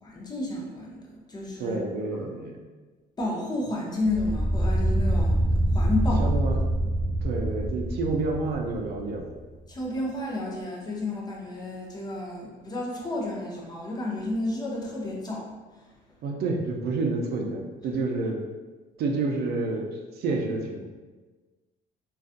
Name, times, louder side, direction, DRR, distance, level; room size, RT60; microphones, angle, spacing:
voice 1, 0.0-1.8 3.2-6.2 9.7-15.5 15.8-15.9, left 2 dB, 25° left, -3 dB, 0.6 m, -31 dB
voice 2, 1.6-2.6 6.2-6.6 7.2-9.3 16.2-18.4 19.0-20.8, right 3 dB, 70° right, 1 dB, 0.4 m, -29 dB
sound 1, 4.0-9.3, right 1 dB, 10° left, 0.9 m, -25 dB
2.5 x 2.3 x 2.5 m, 1.3 s
cardioid pair, 110°, 17 cm